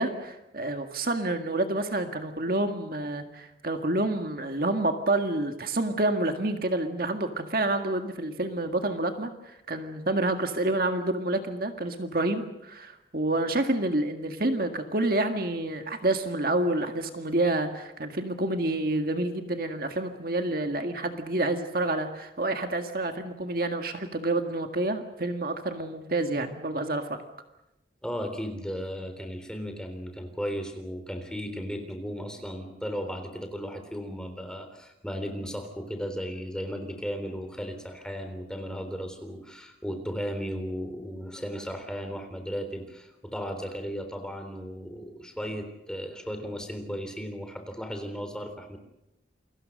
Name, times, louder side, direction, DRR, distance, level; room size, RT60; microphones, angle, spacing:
voice 1, 0.0-27.2, right 2 dB, 50° right, 6 dB, 1.8 m, -28 dB
voice 2, 28.0-48.8, equal, 5° left, 6 dB, 3.6 m, -35 dB
29.0 x 23.5 x 6.5 m, 0.91 s
head